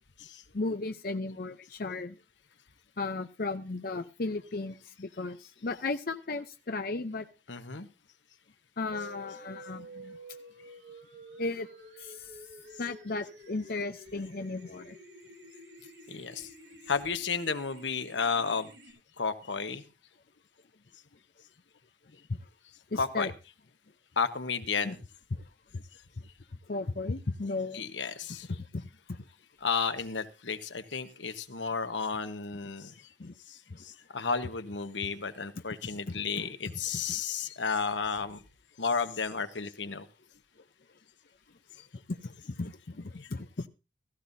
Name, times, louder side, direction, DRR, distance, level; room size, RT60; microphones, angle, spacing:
voice 1, 0.5-2.1 3.0-7.2 8.8-10.1 11.4-11.7 12.0-12.2 12.8-15.0 22.9-23.3 24.8-24.9 25.7-25.8 26.7-27.8 28.5-29.2 33.2-33.3 33.7-33.8 36.1-36.5 37.1-37.2 42.1-43.7, left 3 dB, 55° left, 0.7 m, -35 dB
voice 2, 7.5-7.9 16.1-16.5 16.9-18.7 19.2-19.8 23.0-23.3 24.2-25.0 27.7-28.5 29.6-32.9 33.5-38.4 38.8-40.1, left 5 dB, 85° left, 1.2 m, -32 dB
sound 1, 8.9-18.9, equal, 80° right, 6.9 m, -50 dB
16.0 x 15.0 x 2.7 m
head